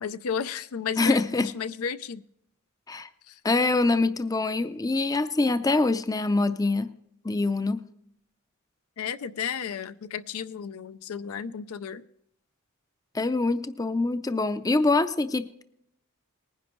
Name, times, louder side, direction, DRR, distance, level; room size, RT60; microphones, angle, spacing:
voice 1, 0.0-2.2 3.3-3.4 9.0-12.0, left 7 dB, 80° left, 13 dB, 0.5 m, -33 dB
voice 2, 1.0-1.5 2.9-3.1 3.4-6.9 7.2-7.8 13.1-15.6, left 3 dB, 15° left, 11 dB, 0.5 m, -24 dB
19.5 x 10.5 x 3.1 m, 0.75 s
head